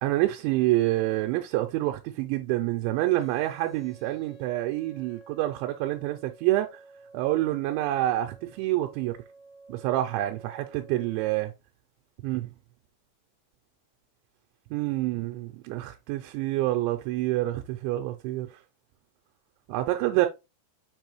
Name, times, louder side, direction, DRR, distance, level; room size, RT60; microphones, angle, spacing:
voice 1, 0.0-6.8 7.1-9.2 9.7-11.5 12.2-12.4 14.7-18.6 19.7-20.3, right 16 dB, 90° right, 3.0 m, -27 dB
sound 1, 3.2-11.2, right 3 dB, 50° left, 3.8 m, -52 dB
6.8 x 5.3 x 3.0 m
omnidirectional pair, 5.2 m